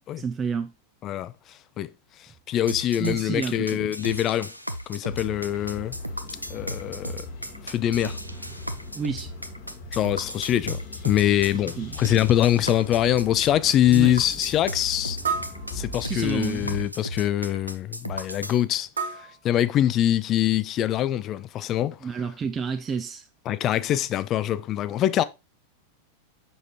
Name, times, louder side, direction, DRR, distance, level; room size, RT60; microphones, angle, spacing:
voice 1, 0.1-0.7 3.0-3.9 8.9-9.3 11.5-12.0 13.9-14.2 16.0-16.9 22.0-23.2, right 6 dB, 20° right, 0.5 m, -30 dB
voice 2, 1.0-1.3 1.8-1.9 2.5-4.5 4.9-6.0 6.5-7.3 7.6-8.2 9.9-15.2 15.7-18.9 19.2-22.0 23.5-25.2, left 12 dB, 30° left, 0.4 m, -24 dB
sound 1, 2.7-18.6, equal, 90° right, 0.5 m, -35 dB
sound 2, 5.1-16.8, left 2 dB, 50° left, 1.6 m, -39 dB
sound 3, 13.4-13.5 15.2-16.4 19.0-20.2, right 6 dB, 70° right, 0.9 m, -33 dB
6.5 x 5.4 x 2.8 m
figure-of-eight pair, 90°, 0 cm